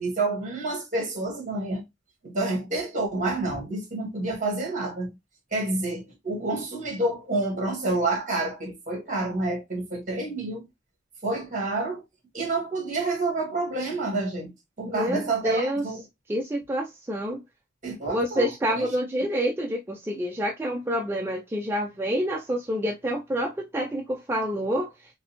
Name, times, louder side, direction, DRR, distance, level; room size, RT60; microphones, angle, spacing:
voice 1, 0.0-1.8 2.2-5.2 5.5-10.7 11.2-12.0 12.3-14.5 14.8-16.0 17.8-18.9, right 2 dB, 40° right, 1.7 m, -28 dB
voice 2, 14.8-15.8 16.3-17.4 18.1-24.9, equal, 10° right, 0.4 m, -28 dB
5.1 x 2.1 x 2.9 m
head